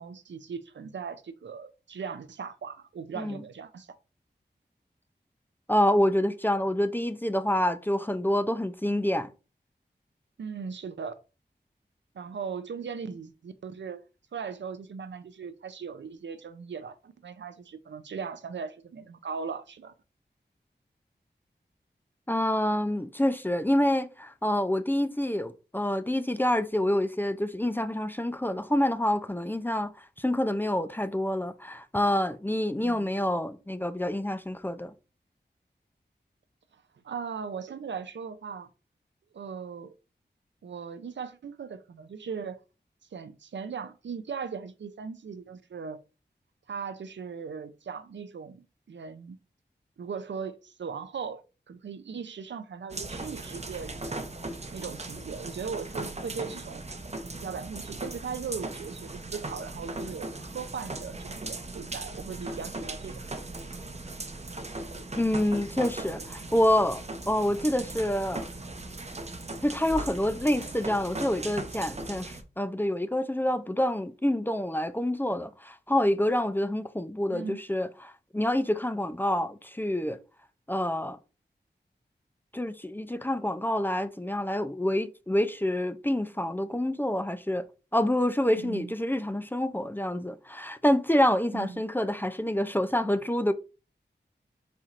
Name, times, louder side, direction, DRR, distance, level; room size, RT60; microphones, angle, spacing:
voice 1, 0.0-3.9 10.4-11.1 12.1-14.0 14.3-19.9 32.8-33.1 37.0-38.7 39.3-39.9 40.6-42.6 43.1-46.0 46.7-49.4 50.0-51.4 51.7-54.3 54.7-56.8 57.4-63.2 65.4-65.6 77.3-77.6 88.6-88.9 91.5-91.8, right 6 dB, 80° right, 0.5 m, -38 dB
voice 2, 5.7-9.3 22.3-34.9 65.2-68.5 69.6-80.2 80.7-81.2 82.5-87.6 87.9-93.5, left 1 dB, 10° left, 0.4 m, -27 dB
sound 1, 52.9-72.4, right 2 dB, 35° right, 0.7 m, -38 dB
4.3 x 4.3 x 2.5 m
cardioid pair, 45°, 19 cm